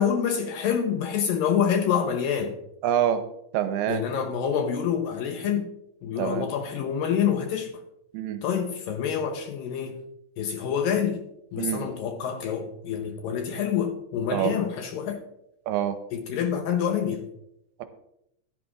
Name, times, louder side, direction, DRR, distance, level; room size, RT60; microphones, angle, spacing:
voice 1, 0.0-2.6 3.9-5.7 6.0-7.8 8.4-10.0 10.4-11.2 11.5-15.2 16.1-17.3, left 8 dB, 75° left, 5 dB, 2.2 m, -27 dB
voice 2, 2.8-3.2 3.5-4.1 6.2-6.5 8.1-8.4 11.6-11.9 14.3-14.6 15.7-16.0, right 10 dB, 80° right, 9 dB, 2.6 m, -26 dB
15.0 x 10.5 x 2.5 m, 0.80 s
omnidirectional pair, 4.7 m